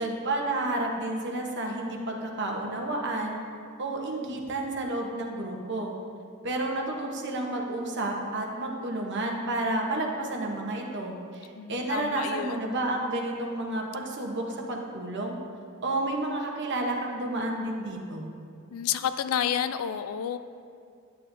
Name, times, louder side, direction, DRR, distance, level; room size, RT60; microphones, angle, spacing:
voice 1, 0.0-3.4 3.8-5.9 6.4-15.4 15.8-18.3, right 2 dB, 55° right, 0 dB, 1.0 m, -31 dB
voice 2, 11.6-12.8 18.7-20.4, left 8 dB, 75° left, 12 dB, 0.4 m, -30 dB
9.6 x 8.3 x 2.7 m, 2.4 s
head